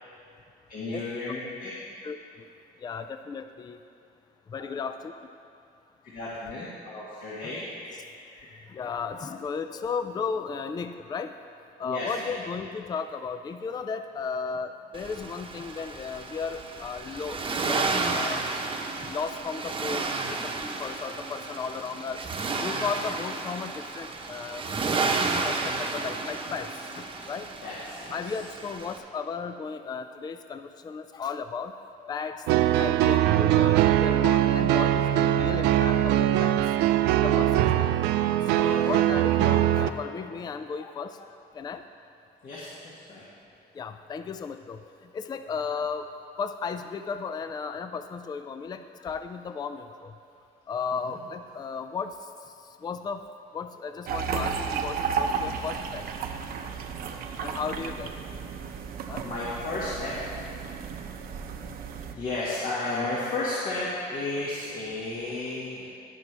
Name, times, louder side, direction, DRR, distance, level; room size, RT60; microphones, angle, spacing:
voice 1, 0.7-1.7 6.0-7.9 8.3-8.5 11.8-12.3 27.6-28.3 37.3-37.7 38.6-39.1 42.4-43.2 51.1-51.2 59.2-60.2 62.1-65.9, left 2 dB, 55° left, -8 dB, 1.8 m, -33 dB
voice 2, 2.8-3.8 4.5-5.1 8.7-11.4 11.8-18.4 19.0-20.0 20.6-22.3 22.6-24.7 25.4-26.7 27.0-27.5 28.1-32.5 32.8-36.5 37.1-37.9 38.5-41.8 43.8-44.8 45.1-46.1 46.4-50.1 50.7-52.1 52.8-53.2 53.5-56.0 57.4-58.1 59.1-59.3 61.6-61.7, left 5 dB, 25° left, 9 dB, 0.4 m, -35 dB
Accelerating revving vroom, 14.9-29.0, right 3 dB, 30° right, 1.0 m, -32 dB
sound 1, 32.5-39.9, right 12 dB, 90° right, 0.4 m, -22 dB
sound 2, 54.1-62.1, right 6 dB, 60° right, 0.8 m, -33 dB
17.5 x 6.0 x 3.4 m, 2.7 s
cardioid pair, 110°, 17 cm